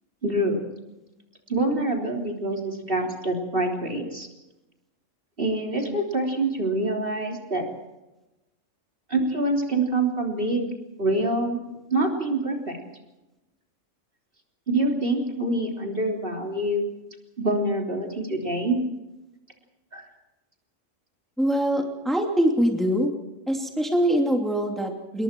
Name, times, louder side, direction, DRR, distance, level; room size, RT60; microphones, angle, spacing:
voice 1, 0.2-0.6 1.5-4.3 5.4-7.6 9.1-10.7 11.0-11.6 11.9-12.8 14.7-16.9 17.4-18.8 19.9-20.1, right 2 dB, 45° right, 1 dB, 3.8 m, -25 dB
voice 2, 21.4-23.1 23.5-25.2, equal, ahead, 1 dB, 2.7 m, -23 dB
27.5 x 22.0 x 4.6 m, 1.0 s
omnidirectional pair, 1.3 m